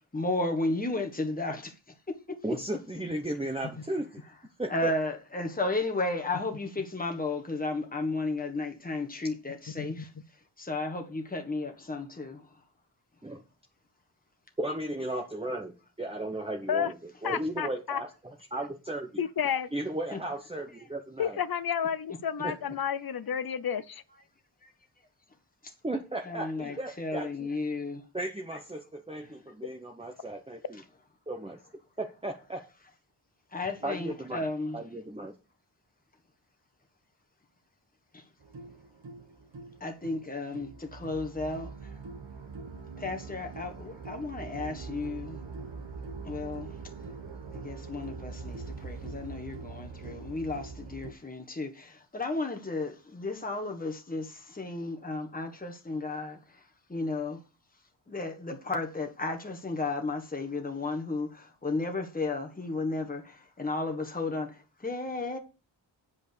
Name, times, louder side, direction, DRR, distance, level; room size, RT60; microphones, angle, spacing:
voice 1, 0.1-1.7 2.1-2.2 2.5-2.6 4.7-10.1 10.6-12.4 18.6-18.7 19.4-19.5 20.1-20.2 20.7-20.9 26.3-28.3 29.2-29.3 33.5-34.8 38.1-38.2 39.8-41.7 43.0-45.4 46.2-46.7 47.6-56.4 56.9-57.4 58.1-64.5 64.8-65.4, left 2 dB, 20° left, 1.4 m, -33 dB
voice 2, 2.4-4.2 4.6-4.9 13.2-13.4 14.6-17.0 17.2-18.1 18.5-19.2 19.7-21.4 22.4-22.5 25.8-27.5 28.1-30.8 31.3-31.6 32.0-32.6 33.8-34.5 34.7-35.3, right 1 dB, 10° right, 1.0 m, -35 dB
voice 3, 17.2-18.0 19.2-19.7 21.2-24.0, left 8 dB, 50° left, 0.7 m, -31 dB
sound 1, 38.4-51.1, right 4 dB, 70° right, 1.3 m, -42 dB
8.4 x 5.2 x 6.8 m
wide cardioid pair, 85°, 45 cm